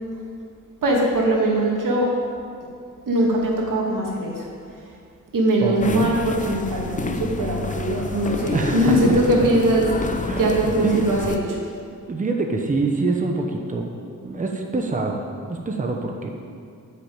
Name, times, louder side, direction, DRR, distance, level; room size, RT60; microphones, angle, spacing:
voice 1, 0.8-2.1 3.1-4.5 5.3-9.9 10.4-11.6, right 1 dB, 85° right, -2 dB, 2.5 m, -21 dB
voice 2, 5.6-6.1 8.5-9.2 10.2-11.0 12.1-13.9 14.2-15.2 15.5-16.3, right 3 dB, 25° right, 2 dB, 0.9 m, -25 dB
sound 1, 5.8-11.4, left 3 dB, 25° left, 0.6 m, -29 dB
10.0 x 6.7 x 8.7 m, 2.3 s
wide cardioid pair, 150°, 31 cm